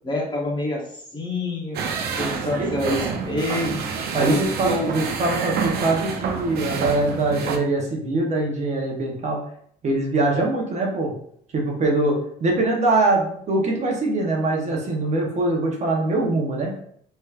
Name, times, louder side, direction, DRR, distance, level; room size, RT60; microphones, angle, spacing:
voice 1, 0.0-0.8 1.1-1.8 2.2-3.8 4.1-4.9, left 1 dB, 25° left, -2 dB, 1.0 m, -26 dB
sound 1, 1.7-7.6, right 5 dB, 65° right, 0.5 m, -28 dB
voice 2, 4.1-9.4 9.8-11.1 11.5-16.7, right 2 dB, 45° right, 0 dB, 0.9 m, -23 dB
3.3 x 3.0 x 2.4 m, 0.63 s
cardioid pair, 110°, 17 cm